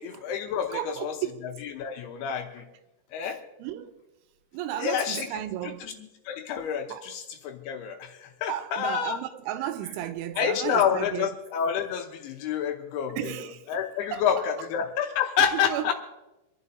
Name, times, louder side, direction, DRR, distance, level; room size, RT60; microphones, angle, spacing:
voice 1, 0.0-1.2 1.6-2.6 3.1-3.4 4.8-9.2 10.4-15.9, left 8 dB, 75° left, 2.6 m, -29 dB
voice 2, 0.7-1.5 3.2-3.3 3.6-3.9 4.5-5.9 6.9-7.1 8.5-11.3 13.2-13.6 14.1-14.2 15.5-15.9, right 12 dB, 85° right, 3.0 m, -34 dB
27.0 x 11.0 x 2.7 m
omnidirectional pair, 5.3 m